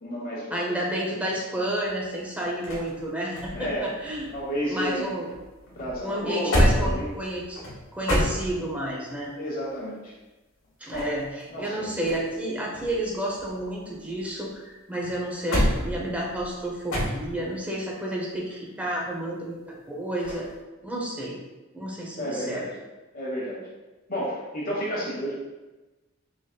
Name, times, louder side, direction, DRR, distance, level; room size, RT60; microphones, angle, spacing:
voice 1, 0.0-0.7 3.5-3.9 4.3-5.1 5.8-7.1 9.4-10.1 10.9-11.1 11.5-11.9 22.2-22.7 23.1-23.6 24.1-25.3, equal, 45° left, -6 dB, 1.1 m, -31 dB
voice 2, 0.5-4.3 4.7-5.3 6.0-7.6 7.9-9.3 10.8-20.5 20.8-21.4 21.7-22.7, right 1 dB, 5° right, -3 dB, 0.6 m, -31 dB
sound 1, 1.8-5.0 5.3-8.9 10.6-12.4 12.7-14.5 14.9-17.6 20.2-20.5, equal, 80° left, 1.1 m, -29 dB
3.9 x 3.7 x 2.2 m, 1.1 s
head